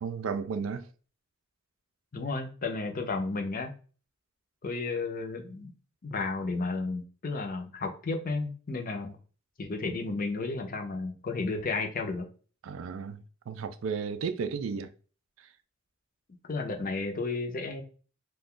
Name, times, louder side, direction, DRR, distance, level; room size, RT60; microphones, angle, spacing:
voice 1, 0.0-0.9 12.6-14.9 15.4-15.5, right 5 dB, 70° right, 0.3 m, -34 dB
voice 2, 2.1-3.7 4.6-5.7 6.0-9.1 9.6-12.3 16.4-17.8, left 3 dB, 45° left, 0.5 m, -33 dB
2.4 x 2.3 x 3.6 m
head